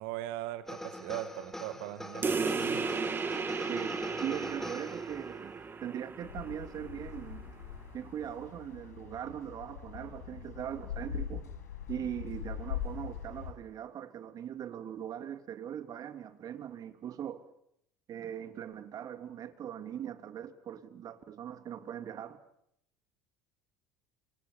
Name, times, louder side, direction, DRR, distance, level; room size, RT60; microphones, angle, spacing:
voice 1, 0.0-2.9, right 14 dB, 70° right, 2.0 m, -39 dB
sound 1, 0.7-5.4, left 1 dB, 5° left, 4.4 m, -43 dB
sound 2, 2.2-7.3, right 4 dB, 25° right, 2.5 m, -35 dB
voice 2, 3.6-7.5 7.9-11.5 11.9-17.4 18.1-22.4, right 9 dB, 45° right, 3.0 m, -40 dB
sound 3, 6.2-13.5, left 8 dB, 85° left, 5.6 m, -42 dB
28.5 x 26.0 x 7.1 m
hypercardioid pair, 75°, 9 cm